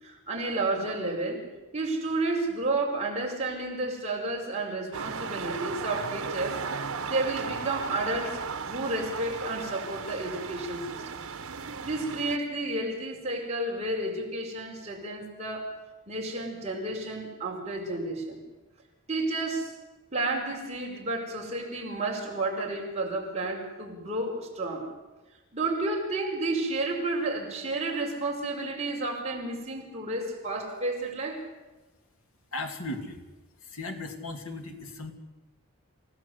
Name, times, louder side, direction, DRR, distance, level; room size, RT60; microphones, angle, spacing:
voice 1, 0.0-1.5 1.7-11.2 11.8-15.7 16.1-18.4 19.1-19.7 20.1-24.9 25.5-31.5, right 2 dB, 30° right, -1 dB, 5.5 m, -31 dB
sound 1, 4.9-12.4, right 5 dB, 85° right, 1.3 m, -36 dB
voice 2, 32.5-33.2 33.6-35.1, left 2 dB, 80° left, 4 dB, 3.0 m, -36 dB
28.0 x 17.0 x 8.2 m, 1.1 s
head